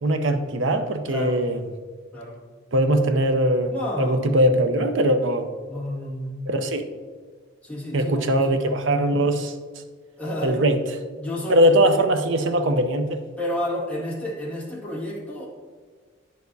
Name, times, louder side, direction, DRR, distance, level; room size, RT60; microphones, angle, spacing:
voice 1, 0.0-1.6 2.7-5.5 6.5-6.9 7.9-9.5 10.4-10.8 11.5-13.2, right 1 dB, 70° right, 7 dB, 0.6 m, -21 dB
voice 2, 1.1-1.4 2.1-2.4 3.7-4.4 5.7-6.5 7.6-8.9 10.2-10.6 11.2-11.8 13.4-15.5, left 1 dB, 5° left, -7 dB, 1.9 m, -30 dB
9.3 x 6.5 x 2.7 m, 1.5 s
head